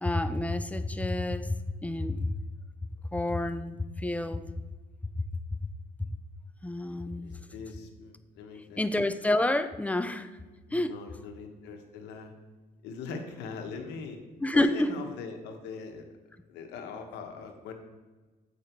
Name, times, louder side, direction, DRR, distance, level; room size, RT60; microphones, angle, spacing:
voice 1, 0.0-2.3 3.1-4.4 5.2-5.3 6.6-7.4 8.8-10.4 10.7-10.9 14.4-14.9, left 1 dB, 10° left, 11 dB, 0.5 m, -29 dB
voice 2, 7.2-8.8 10.7-12.3 12.8-14.2 14.5-16.1 16.5-17.7, left 5 dB, 90° left, 4 dB, 1.3 m, -41 dB
8.5 x 4.9 x 4.6 m, 1.3 s
cardioid pair, 110°, 17 cm